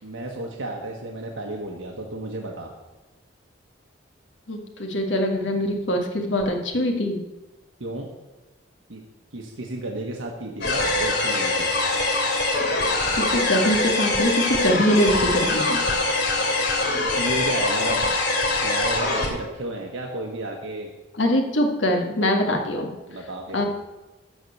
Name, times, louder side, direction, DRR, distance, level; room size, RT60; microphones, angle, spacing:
voice 1, 0.0-2.7 7.8-8.1 8.9-9.0 9.3-11.7 17.2-18.1 18.6-20.9 23.1-23.6, right 1 dB, 80° right, 0 dB, 1.3 m, -32 dB
voice 2, 4.5-7.2 13.2-15.8 21.1-22.9 23.5-23.6, equal, 75° left, 3 dB, 1.8 m, -23 dB
sound 1, 10.6-19.3, left 2 dB, 55° left, 2.8 m, -23 dB
13.5 x 4.5 x 8.3 m, 1.1 s
head